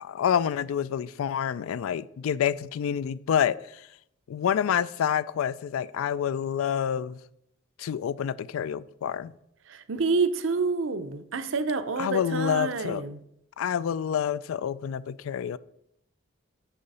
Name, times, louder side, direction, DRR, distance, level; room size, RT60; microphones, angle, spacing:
voice 1, 0.0-3.8 4.3-7.2 7.8-9.3 12.0-13.0 13.6-15.6, left 8 dB, 85° left, 0.3 m, -28 dB
voice 2, 9.7-13.2, right 4 dB, 70° right, 0.6 m, -28 dB
6.8 x 5.6 x 5.4 m
head